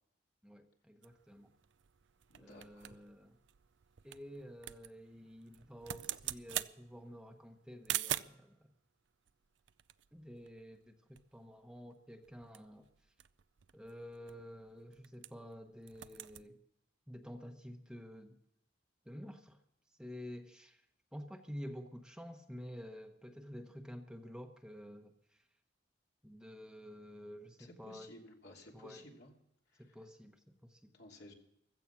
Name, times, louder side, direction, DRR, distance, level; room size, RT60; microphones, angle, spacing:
voice 1, 0.4-1.5 2.4-3.3 4.0-8.6 10.1-12.9 13.7-16.6 17.1-18.4 19.0-19.6 20.0-20.8 21.1-25.4 26.2-28.1 28.7-29.1 29.8-30.9, equal, 5° right, 4 dB, 1.1 m, -50 dB
sound 1, 1.0-8.5 9.3-10.9 11.2-11.3 11.5-11.8 12.2-15.6 15.8-16.5, right 13 dB, 75° right, 0.5 m, -44 dB
voice 2, 2.3-3.0 27.6-29.3 29.7-30.0 30.9-31.3, left 1 dB, 65° left, 0 dB, 3.0 m, -55 dB
15.5 x 14.5 x 6.1 m, 0.79 s
head